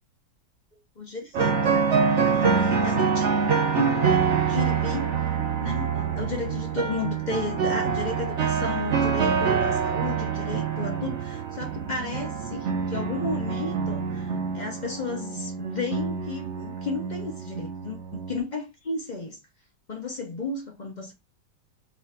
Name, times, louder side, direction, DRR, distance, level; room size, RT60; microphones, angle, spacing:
voice 1, 1.0-1.9 2.2-3.3 3.8-5.1 5.6-19.4 19.9-21.1, left 3 dB, 40° left, 0.6 m, -33 dB
sound 1, 1.3-18.4, right 6 dB, 60° right, 0.8 m, -26 dB
4.1 x 2.4 x 4.2 m
omnidirectional pair, 1.8 m